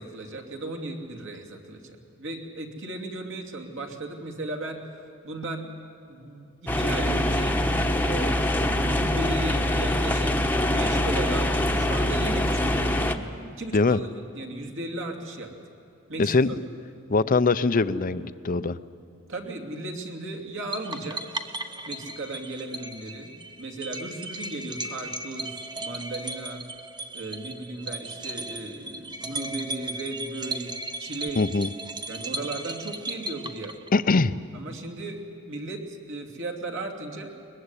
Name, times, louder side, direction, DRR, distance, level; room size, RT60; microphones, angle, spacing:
voice 1, 0.0-4.8 5.2-5.7 6.1-7.6 8.0-8.4 8.7-10.4 10.7-13.0 13.6-14.1 14.3-15.5 16.1-16.6 19.3-21.2 21.9-23.3 23.6-26.6 27.1-30.7 31.0-31.4 32.1-33.8 34.1-34.2 34.5-37.3, right 2 dB, 60° right, 1 dB, 2.8 m, -36 dB
sound 1, 6.7-13.2, left 1 dB, 10° left, 1.0 m, -24 dB
voice 2, 16.2-16.5 17.1-18.8 31.4-31.7 33.9-34.4, left 3 dB, 40° left, 14 dB, 0.6 m, -22 dB
sound 2, 20.7-34.2, right 2 dB, 20° right, 0.9 m, -36 dB
22.5 x 20.5 x 9.8 m, 2.7 s
head